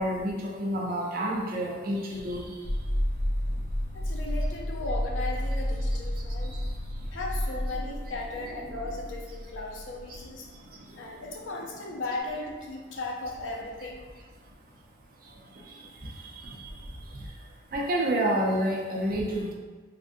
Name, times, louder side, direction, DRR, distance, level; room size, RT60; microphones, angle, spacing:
voice 1, 0.0-2.5 8.7-9.0 10.1-10.2 16.6-16.7 17.7-19.5, right 1 dB, 50° right, -2 dB, 0.5 m, -29 dB
sound 1, 2.6-10.3, equal, 30° left, 0.5 m, -31 dB
voice 2, 3.9-6.6 7.1-10.5 11.0-14.0, left 2 dB, 80° left, 0 dB, 0.5 m, -36 dB
3.3 x 2.7 x 2.5 m, 1.4 s
head